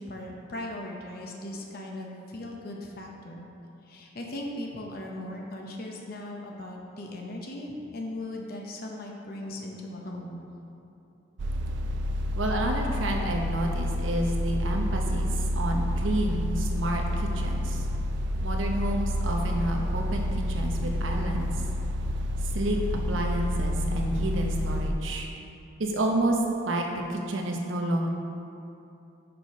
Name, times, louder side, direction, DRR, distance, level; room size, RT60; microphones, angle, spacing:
voice 1, 0.0-3.5 3.8-10.4, left 1 dB, 50° left, 0 dB, 0.7 m, -38 dB
sound 1, 11.4-24.9, equal, 65° right, 0.4 m, -29 dB
voice 2, 12.3-15.3 15.5-17.9 18.4-21.5 22.5-22.8 23.1-25.3 25.8-26.4 26.6-26.8 27.1-28.1, right 1 dB, 85° right, 1 dB, 0.8 m, -29 dB
6.0 x 5.0 x 5.3 m, 2.8 s
head